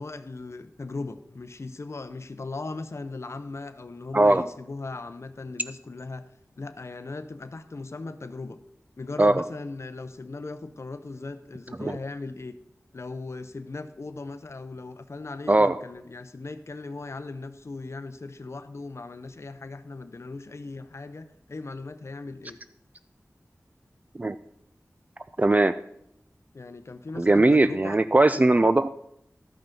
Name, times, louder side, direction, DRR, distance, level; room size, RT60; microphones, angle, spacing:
voice 1, 0.0-6.3 6.6-8.6 9.0-12.6 12.9-22.6 26.5-28.0 28.4-28.5, left 3 dB, 55° left, 10 dB, 0.6 m, -38 dB
voice 2, 25.4-25.7 27.2-28.9, right 2 dB, 30° right, 12 dB, 0.3 m, -19 dB
12.5 x 5.6 x 5.2 m, 0.75 s
wide cardioid pair, 60°, 5 cm